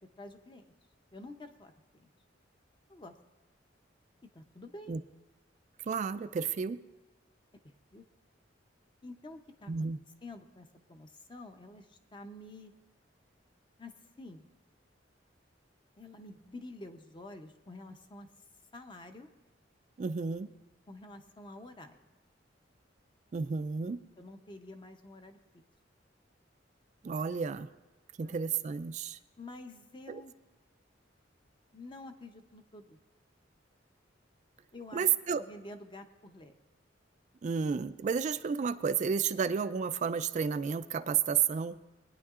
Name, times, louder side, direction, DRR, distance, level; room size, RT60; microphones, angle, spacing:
voice 1, 0.2-0.7 1.1-1.7 2.0-2.1 2.9-3.1 4.2-5.0 7.6-8.0 9.0-9.7 10.2-12.7 13.8-14.4 16.0-18.3 18.7-19.3 20.9-22.0 24.2-25.4 28.2-28.4 29.4-30.3 31.7-33.0 34.7-35.0 35.3-36.6, left 2 dB, 25° left, 7 dB, 0.7 m, -49 dB
voice 2, 5.9-6.8 9.7-10.0 20.0-20.5 23.3-24.0 27.0-27.7 28.2-29.2 30.1-30.2 34.9-35.4 37.4-41.8, right 6 dB, 40° right, 11 dB, 0.3 m, -31 dB
22.0 x 9.5 x 2.4 m, 1.1 s
head